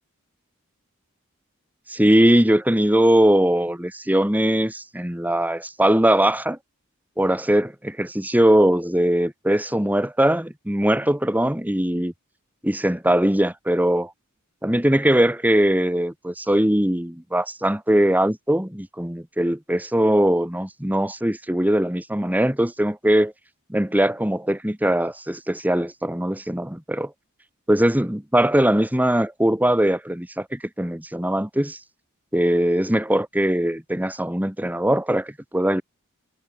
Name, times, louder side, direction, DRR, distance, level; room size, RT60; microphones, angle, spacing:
voice 1, 1.9-6.6 7.2-12.1 12.6-14.1 14.6-23.3 23.7-27.1 27.7-31.8 32.3-35.8, right 1 dB, 10° right, 1.6 m, -21 dB
head